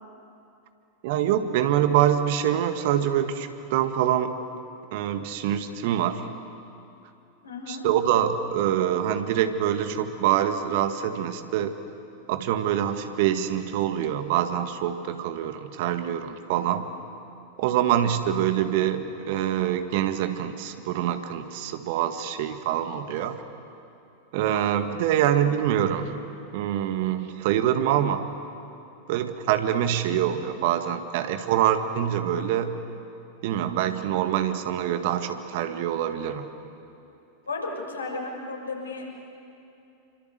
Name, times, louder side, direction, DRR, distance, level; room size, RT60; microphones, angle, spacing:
voice 1, 1.0-4.3 4.9-6.2 7.7-11.8 12.3-16.9 17.6-23.4 24.3-26.1 26.5-28.3 29.1-32.8 33.4-36.5, right 10 dB, 50° right, 8 dB, 1.8 m, -25 dB
voice 2, 7.4-7.8 37.5-39.1, left 3 dB, 75° left, -1 dB, 6.6 m, -33 dB
28.0 x 25.0 x 8.0 m, 2.7 s
figure-of-eight pair, 90°, 0 cm